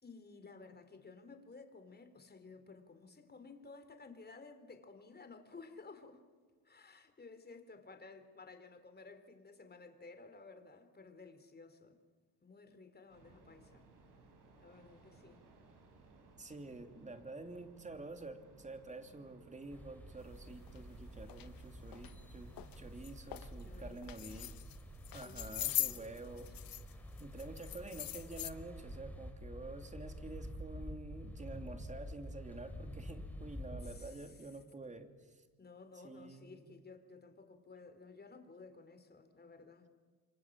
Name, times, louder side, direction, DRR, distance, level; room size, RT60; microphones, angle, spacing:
voice 1, 0.0-6.2 6.6-12.0 12.4-13.9 14.6-15.4 22.0-22.1 23.6-24.0 25.2-26.6 33.7-34.5 35.6-39.9, left 4 dB, 25° left, 3.8 m, -55 dB
sound 1, 13.1-22.9, right 3 dB, 55° right, 6.9 m, -62 dB
voice 2, 16.4-22.5 22.8-24.6 25.1-26.5 27.2-35.4 36.0-36.7, right 2 dB, 20° right, 3.0 m, -49 dB
sound 2, 19.7-34.1, equal, 5° left, 3.8 m, -49 dB
sound 3, 20.7-20.8 21.3-21.5 21.9-22.1 22.6-22.8 23.0-23.5 24.0-24.8 25.0-26.9 27.2-28.5, left 14 dB, 65° left, 1.4 m, -40 dB
29.0 x 24.5 x 7.5 m
cardioid pair, 95°, 37 cm